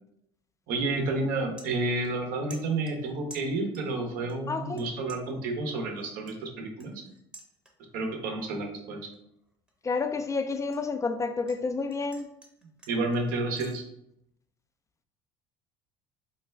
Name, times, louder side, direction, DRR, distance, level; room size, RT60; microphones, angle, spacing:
sound 1, 0.6-0.9 1.2-2.2 2.5-4.0 4.3-4.8 5.1-8.0 8.4-8.7 9.1-11.6 11.9-13.8, right 1 dB, 5° right, 0.8 m, -52 dB
voice 1, 0.7-7.0 7.9-9.0 12.9-13.8, right 2 dB, 65° right, 3 dB, 0.8 m, -30 dB
voice 2, 4.5-4.8 9.8-12.3, left 4 dB, 20° left, 8 dB, 0.4 m, -30 dB
3.8 x 2.2 x 3.3 m, 0.79 s
hypercardioid pair, 70°, 16 cm